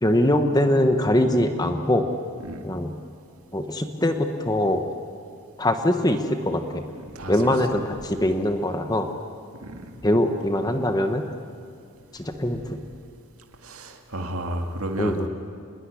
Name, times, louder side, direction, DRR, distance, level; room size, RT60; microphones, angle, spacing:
voice 1, 0.0-2.1 2.6-2.9 3.5-4.8 5.6-6.2 6.4-6.8 7.3-9.1 10.0-11.2 12.2-12.8 15.0-15.3, left 1 dB, 20° left, 6 dB, 1.1 m, -22 dB
voice 2, 7.1-7.6 9.6-10.0 13.6-15.2, right 1 dB, 80° right, 4 dB, 2.0 m, -32 dB
26.0 x 20.5 x 9.9 m, 2.3 s
head